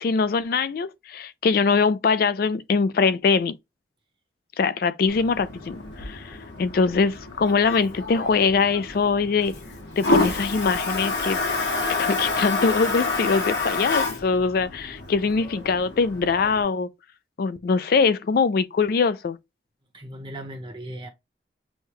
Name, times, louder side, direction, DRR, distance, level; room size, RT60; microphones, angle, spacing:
voice 1, 0.0-3.5 4.6-9.6 10.0-11.4 12.0-16.9 17.4-19.4, left 5 dB, 55° left, 0.4 m, -22 dB
Toilet flush, 5.1-16.6, left 3 dB, 85° left, 1.4 m, -28 dB
voice 2, 19.9-21.1, right 1 dB, 30° right, 1.0 m, -37 dB
6.3 x 2.2 x 2.9 m
head